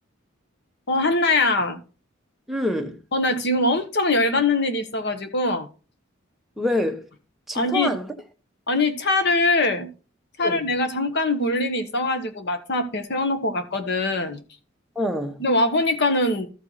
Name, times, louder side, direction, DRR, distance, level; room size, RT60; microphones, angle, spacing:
voice 1, 0.9-1.8 3.1-5.7 7.5-7.9 8.7-9.9 10.4-14.4 15.4-16.5, left 2 dB, 55° left, 1.2 m, -22 dB
voice 2, 2.5-3.0 6.6-7.1 7.5-8.1 10.4-10.7 14.9-15.4, left 1 dB, ahead, 1.0 m, -26 dB
13.5 x 4.6 x 4.0 m
head